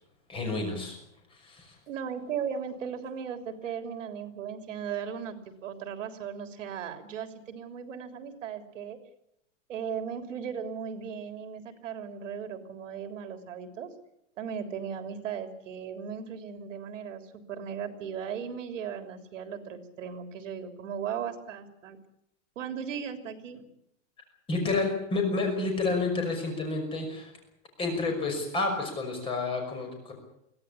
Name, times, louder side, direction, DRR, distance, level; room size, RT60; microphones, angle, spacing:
voice 1, 0.3-1.0 1.3-1.8 24.5-27.3 27.8-30.1, left 3 dB, 15° left, 3 dB, 5.8 m, -30 dB
voice 2, 1.9-9.0 9.7-13.9 14.4-17.2 17.5-22.0 22.6-23.7, right 7 dB, 75° right, 7 dB, 3.4 m, -37 dB
24.0 x 16.5 x 8.6 m, 0.78 s
supercardioid pair, 175°, 38 cm